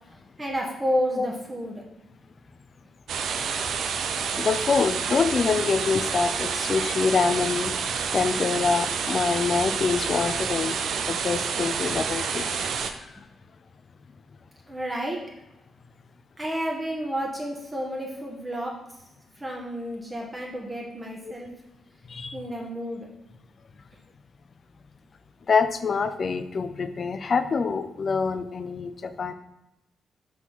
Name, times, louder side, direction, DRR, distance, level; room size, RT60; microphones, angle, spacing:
voice 1, 0.4-1.8 14.7-15.2 16.4-18.7 19.4-21.5 22.3-23.1, equal, 15° right, -2 dB, 1.2 m, -30 dB
sound 1, 3.1-12.9, right 6 dB, 75° right, 0.6 m, -28 dB
voice 2, 4.4-7.9 8.1-13.1 21.2-21.3 22.1-22.3 25.5-29.3, left 5 dB, 45° left, 11 dB, 0.5 m, -26 dB
6.0 x 3.9 x 6.0 m, 0.94 s
cardioid pair, 125°, 0 cm